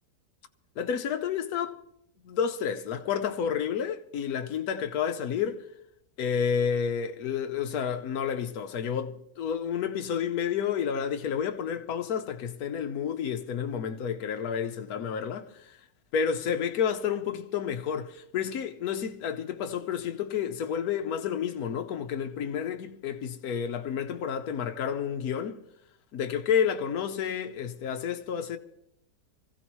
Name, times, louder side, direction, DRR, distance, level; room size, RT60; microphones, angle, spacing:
voice 1, 0.8-1.8 2.2-5.6 6.2-15.8 16.1-25.6 26.1-28.6, left 7 dB, 60° left, 1.2 m, -30 dB
25.0 x 15.5 x 3.1 m
omnidirectional pair, 1.9 m